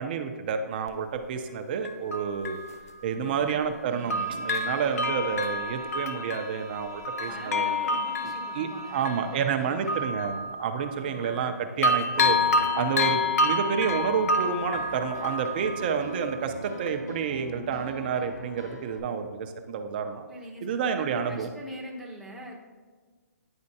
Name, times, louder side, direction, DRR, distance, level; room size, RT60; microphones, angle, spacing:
voice 1, 0.0-2.6 3.0-7.7 8.5-12.4 12.7-20.2 20.6-21.5, right 6 dB, 35° right, 6 dB, 0.5 m, -29 dB
Bell, 0.9-1.0 1.8-3.8 4.1-11.5 11.8-16.4 16.9-17.0, left 2 dB, 60° left, 0.5 m, -29 dB
voice 2, 3.1-3.6 3.8-4.4 7.3-9.7 10.9-11.5 20.3-22.5, equal, ahead, -4 dB, 0.8 m, -43 dB
Bowed string instrument, 3.8-10.2, right 4 dB, 80° right, 0.6 m, -49 dB
Piano, 12.1-19.0, equal, 80° left, 1.2 m, -42 dB
9.7 x 4.3 x 2.8 m, 1.4 s
hypercardioid pair, 155°, 9 cm